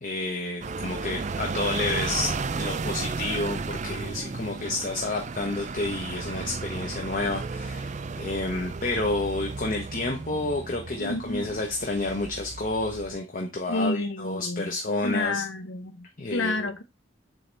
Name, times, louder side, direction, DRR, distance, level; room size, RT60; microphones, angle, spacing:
voice 1, 0.0-15.4 16.2-16.7, left 2 dB, 45° left, 0.9 m, -30 dB
sound 1, 0.6-13.2, right 4 dB, 35° right, 0.4 m, -34 dB
voice 2, 11.0-11.5 13.7-14.7 15.0-16.8, left 2 dB, 75° left, 0.8 m, -30 dB
7.7 x 3.3 x 3.9 m
head